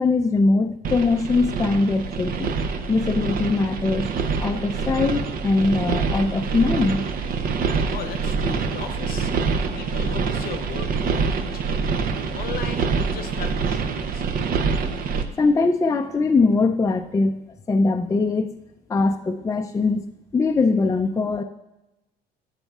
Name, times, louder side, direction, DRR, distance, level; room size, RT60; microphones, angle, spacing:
voice 1, 0.0-2.5 2.9-4.1 4.4-7.0 15.4-17.3 17.7-18.6 18.9-20.0 20.3-21.4, left 3 dB, 20° left, 5 dB, 0.4 m, -21 dB
sound 1, 0.8-15.2, right 5 dB, 60° right, 0.7 m, -25 dB
voice 2, 7.9-9.3 9.8-12.0 12.3-14.3, left 7 dB, 60° left, 8 dB, 0.9 m, -37 dB
13.0 x 8.1 x 2.4 m, 0.97 s
cardioid pair, 110°, 17 cm